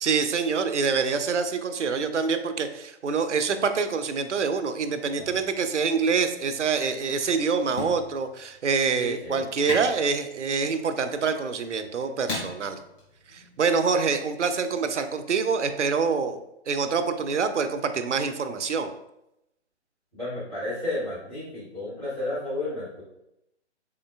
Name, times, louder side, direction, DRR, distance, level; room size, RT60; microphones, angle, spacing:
voice 1, 0.0-12.8 13.3-16.4 16.7-18.9, right 5 dB, 80° right, 9 dB, 0.5 m, -26 dB
sound 1, 5.2-14.0, left 2 dB, 20° left, 1.4 m, -40 dB
voice 2, 9.0-9.4 20.1-23.0, left 2 dB, ahead, -14 dB, 0.4 m, -32 dB
3.8 x 3.6 x 2.3 m, 0.84 s
figure-of-eight pair, 135°, 35 cm